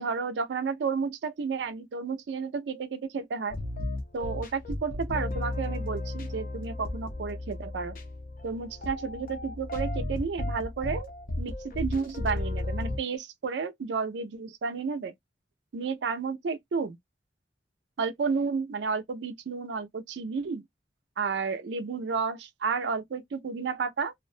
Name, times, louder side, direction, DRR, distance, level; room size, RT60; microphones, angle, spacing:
voice 1, 0.0-3.5 4.1-8.0 8.4-11.1 11.4-15.1 15.7-17.0 18.0-20.6 21.2-24.1, right 5 dB, 80° right, 0.4 m, -32 dB
sound 1, 3.5-13.0, left 2 dB, 50° left, 0.5 m, -34 dB
2.5 x 2.1 x 2.4 m
head